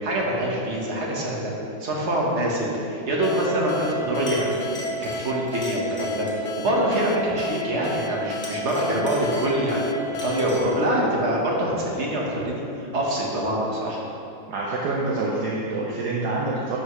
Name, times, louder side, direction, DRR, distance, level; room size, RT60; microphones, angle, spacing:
voice 1, 0.0-1.5 1.8-14.0, right 1 dB, 40° right, -3 dB, 1.4 m, -25 dB
sound 1, 3.2-11.7, left 1 dB, 85° left, 1.4 m, -33 dB
Chink clink, 4.3-6.5 8.2-9.8 10.2-10.8, equal, 10° left, 0.6 m, -40 dB
voice 2, 14.5-16.8, right 3 dB, 65° right, -4 dB, 1.3 m, -26 dB
12.0 x 5.8 x 3.2 m, 2.7 s
omnidirectional pair, 2.2 m